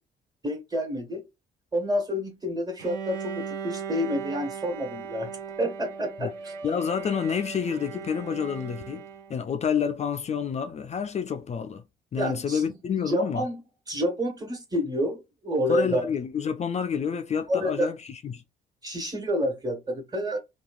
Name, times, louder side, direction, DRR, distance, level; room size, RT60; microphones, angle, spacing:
voice 1, 0.4-1.2 1.7-5.3 5.6-6.5 12.2-12.7 13.1-13.6 13.9-16.1 17.5-17.9 18.8-20.4, equal, 20° right, 1.4 m, -28 dB
Bowed string instrument, 2.8-9.5, right 6 dB, 85° right, 0.5 m, -38 dB
voice 2, 6.6-11.8 12.1-13.4 15.7-18.4, left 7 dB, 35° left, 0.4 m, -29 dB
3.0 x 2.3 x 2.4 m
hypercardioid pair, 50°, 21 cm